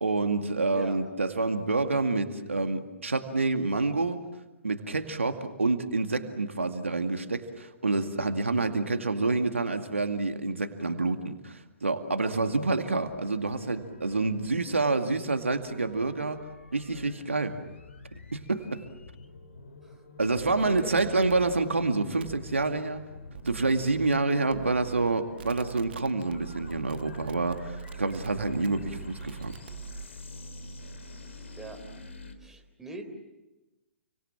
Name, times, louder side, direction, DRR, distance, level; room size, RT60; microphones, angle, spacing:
voice 1, 0.0-4.2 4.6-16.4 16.7-17.6 18.3-18.8 20.2-23.0 23.4-29.5, right 3 dB, 85° right, 6 dB, 2.2 m, -28 dB
sound 1, 12.8-32.3, left 2 dB, 75° left, 3.7 m, -48 dB
sound 2, 20.3-21.6 22.2-22.4 23.3-24.1 24.5-25.1 25.4-30.1, right 6 dB, 55° right, 1.1 m, -42 dB
voice 2, 20.6-21.2 31.5-31.8 32.4-33.0, right 2 dB, 5° right, 3 dB, 3.9 m, -42 dB
30.0 x 24.5 x 7.4 m, 1.0 s
figure-of-eight pair, 120°, 7 cm